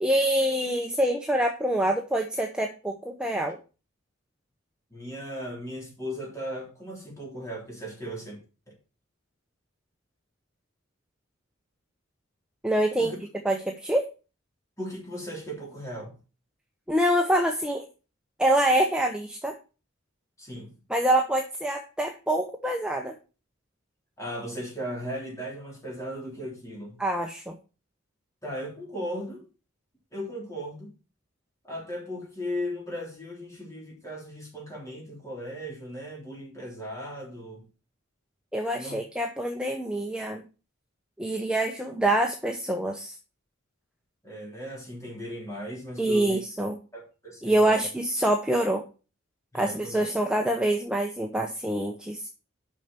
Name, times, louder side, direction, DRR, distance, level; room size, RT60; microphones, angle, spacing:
voice 1, 0.0-3.6 12.6-13.1 13.4-14.0 16.9-17.8 18.4-19.5 20.9-23.2 27.0-27.6 38.5-40.4 41.2-43.2 46.0-46.8 47.4-48.8 49.5-52.3, right 1 dB, 5° right, 0.8 m, -25 dB
voice 2, 4.9-8.4 8.7-8.8 13.0-13.2 14.8-16.1 20.4-20.7 24.2-27.0 28.4-29.4 30.1-30.9 31.6-37.6 38.7-39.0 44.2-46.4 46.9-47.8 49.5-50.0, equal, 15° left, 3.4 m, -37 dB
6.4 x 5.8 x 6.7 m
head